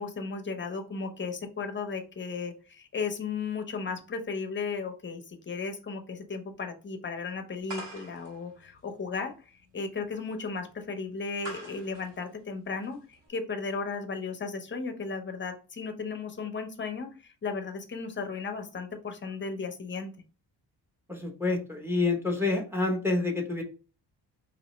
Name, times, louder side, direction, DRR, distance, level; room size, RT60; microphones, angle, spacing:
voice 1, 0.0-20.1, left 4 dB, 25° left, 5 dB, 0.7 m, -35 dB
sound 1, 7.7-13.3, right 1 dB, 80° right, 1.8 m, -46 dB
voice 2, 21.1-23.6, left 3 dB, 5° right, 2 dB, 0.8 m, -28 dB
4.1 x 2.9 x 3.0 m, 0.36 s
cardioid pair, 140°, 43 cm